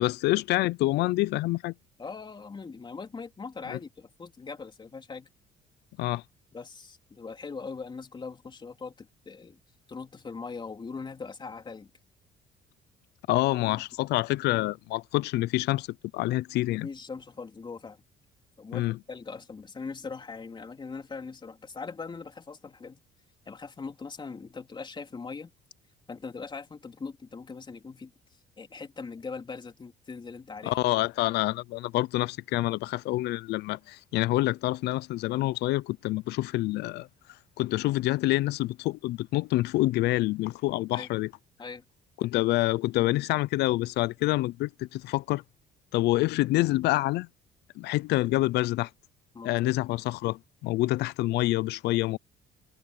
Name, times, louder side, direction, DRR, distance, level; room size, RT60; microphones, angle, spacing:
voice 1, 0.0-1.7 3.7-3.8 6.0-6.2 13.3-15.9 16.1-16.9 18.7-19.0 30.7-37.1 37.6-41.3 42.2-45.4 45.9-47.3 47.8-48.9 49.4-52.2, left 18 dB, 80° left, 0.6 m, -27 dB
voice 2, 2.0-5.3 6.5-9.6 9.9-11.9 13.7-13.8 16.7-18.0 18.6-23.0 23.5-25.5 26.1-28.1 28.6-30.8 40.9-41.1 41.6-41.8 49.3-49.6, left 4 dB, 25° left, 3.8 m, -41 dB
cardioid pair, 110°, 17 cm